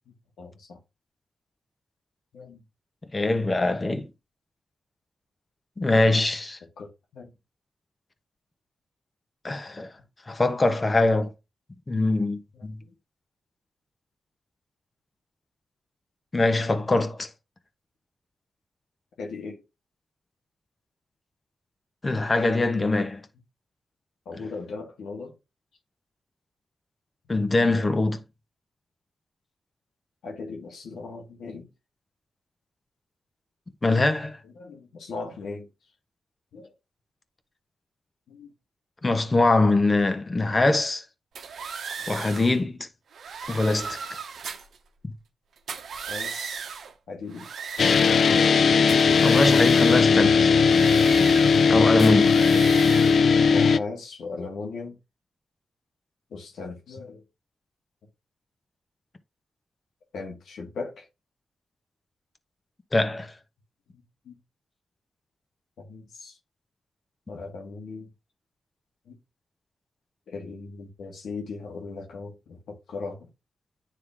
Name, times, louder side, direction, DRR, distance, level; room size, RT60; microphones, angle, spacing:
voice 1, 0.1-0.8 2.3-2.6 6.0-6.2 6.8-7.3 12.5-12.9 19.2-19.6 24.3-25.4 30.2-31.7 34.4-35.7 36.5-36.7 38.3-38.5 42.0-42.1 46.1-46.7 47.1-47.5 49.2-49.7 53.5-55.0 56.3-57.2 60.1-61.1 63.9-64.4 65.8-66.4 67.3-68.1 69.1-69.2 70.3-73.3, left 4 dB, 90° left, 1.8 m, -38 dB
voice 2, 3.1-4.1 5.8-6.6 9.4-9.9 10.3-11.3 11.9-12.8 16.3-17.3 22.0-23.3 27.3-28.2 33.8-34.4 39.0-41.0 42.1-42.9 43.5-44.2 49.1-50.5 51.7-52.4 62.9-63.3, left 2 dB, 30° left, 1.1 m, -23 dB
sound 1, 41.4-42.6 43.1-44.8 45.6-46.9 47.3-48.6 48.9-50.1 50.6-51.7 52.0-53.3, right 6 dB, 80° right, 0.8 m, -37 dB
sound 2, 47.8-53.8, left 5 dB, 65° left, 0.4 m, -18 dB
9.7 x 3.3 x 3.5 m
cardioid pair, 70°, 0 cm